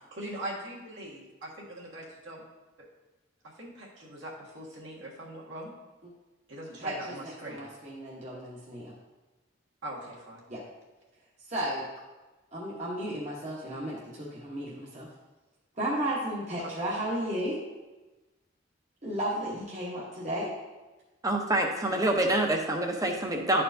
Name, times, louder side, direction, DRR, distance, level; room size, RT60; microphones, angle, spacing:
voice 1, 0.1-2.4 3.6-5.7 6.5-7.7 9.8-10.4 16.6-16.7, right 1 dB, 70° right, -4 dB, 1.6 m, -41 dB
voice 2, 6.8-8.9 10.5-10.6 11.5-11.9 12.5-15.1 15.8-17.6 19.0-20.5, right 1 dB, 35° right, -6 dB, 1.0 m, -34 dB
voice 3, 21.2-23.6, right 1 dB, 20° right, 2 dB, 0.7 m, -26 dB
11.0 x 4.4 x 2.7 m, 1.1 s
head